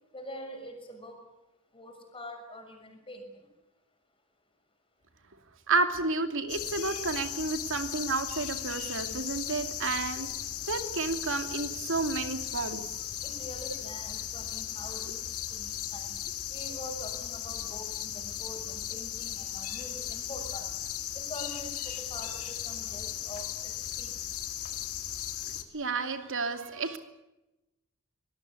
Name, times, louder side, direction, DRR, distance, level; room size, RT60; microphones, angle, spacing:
voice 1, 0.1-1.2 1.7-3.4 13.2-16.1 16.5-20.8 21.1-24.1, left 1 dB, 25° left, 4 dB, 6.4 m, -45 dB
voice 2, 5.7-10.3 10.7-12.8 25.7-27.0, right 3 dB, 60° right, 7 dB, 2.7 m, -31 dB
sound 1, 6.5-25.6, left 10 dB, 75° left, 2.3 m, -37 dB
24.0 x 19.5 x 8.4 m, 0.97 s
head